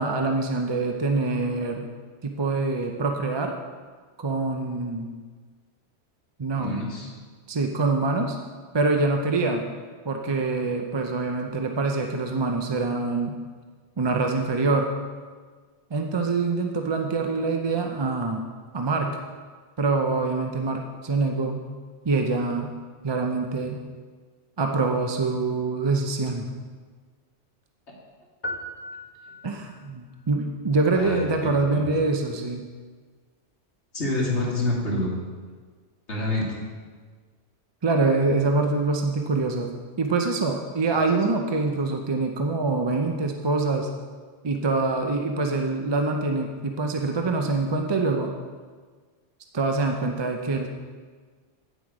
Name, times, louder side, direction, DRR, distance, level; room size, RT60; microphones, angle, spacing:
voice 1, 0.0-1.8 2.2-3.5 4.2-5.2 6.4-6.8 7.5-8.4 8.7-9.7 10.1-13.3 14.0-14.9 15.9-18.5 18.7-19.2 19.8-21.7 22.0-22.7 23.0-23.8 24.6-26.5 29.4-32.6 37.8-39.7 40.0-43.9 44.4-48.3 49.5-50.7, right 3 dB, 35° right, 3 dB, 0.4 m, -25 dB
voice 2, 6.5-7.1 30.9-31.9 33.9-35.1 36.1-36.5 40.9-41.0, left 1 dB, 65° left, -3 dB, 2.3 m, -27 dB
sound 1, 28.4-29.9, equal, 25° left, 0.7 m, -37 dB
9.2 x 7.6 x 4.9 m, 1.5 s
omnidirectional pair, 1.2 m